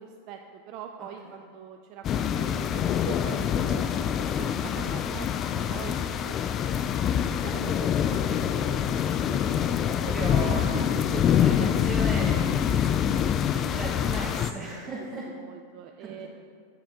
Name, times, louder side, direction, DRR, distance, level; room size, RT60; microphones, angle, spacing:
voice 1, 0.0-3.8 4.4-6.4 7.2-8.9 9.3-9.4 10.0-10.8 11.1-11.2 12.2-12.9 15.3-16.3, right 9 dB, 50° right, 4 dB, 0.4 m, -43 dB
sound 1, 2.0-14.5, left 9 dB, 35° left, 0.3 m, -25 dB
voice 2, 10.0-10.9 11.2-12.8 13.1-13.3 13.7-15.3 16.0-16.3, right 2 dB, 30° right, -4 dB, 1.0 m, -36 dB
7.1 x 7.0 x 2.9 m, 2.1 s
hypercardioid pair, 115°, 0 cm